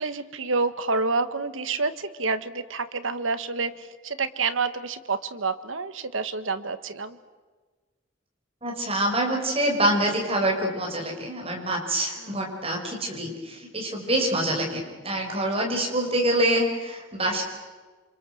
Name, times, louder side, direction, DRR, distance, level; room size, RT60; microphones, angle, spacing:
voice 1, 0.0-7.2 12.2-12.4, right 4 dB, 75° right, 11 dB, 1.5 m, -28 dB
voice 2, 8.6-17.4, right 1 dB, 30° right, 1 dB, 5.7 m, -26 dB
28.5 x 26.5 x 7.9 m, 1.3 s
head